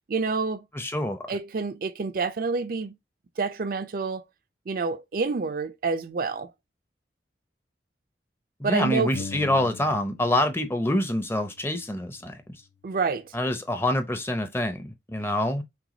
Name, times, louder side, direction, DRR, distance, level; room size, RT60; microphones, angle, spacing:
voice 1, 0.1-0.6 1.3-2.9 3.4-4.2 4.7-6.5 8.6-9.1 12.8-13.3, right 4 dB, 50° right, 0.4 m, -28 dB
voice 2, 0.7-1.2 8.6-12.3 13.3-15.6, left 1 dB, 15° left, 0.6 m, -26 dB
sound 1, 9.1-10.6 10.9-12.7, left 4 dB, 80° left, 0.5 m, -42 dB
6.0 x 2.3 x 3.8 m
head